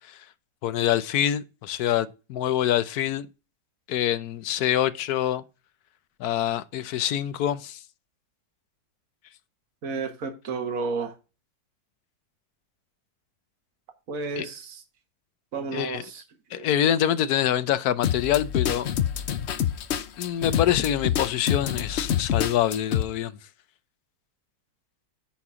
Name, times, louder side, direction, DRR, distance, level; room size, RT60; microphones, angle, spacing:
voice 1, 0.6-3.3 3.9-5.4 6.2-7.8 14.4-14.5 15.7-16.0 16.5-18.9 20.2-23.4, left 11 dB, 80° left, 1.2 m, -25 dB
voice 2, 9.8-11.1 14.1-14.8 15.5-16.2 16.6-16.7, right 4 dB, 60° right, 1.8 m, -32 dB
sound 1, 18.0-23.0, left 9 dB, 60° left, 0.8 m, -26 dB
10.0 x 4.2 x 4.8 m
omnidirectional pair, 1.6 m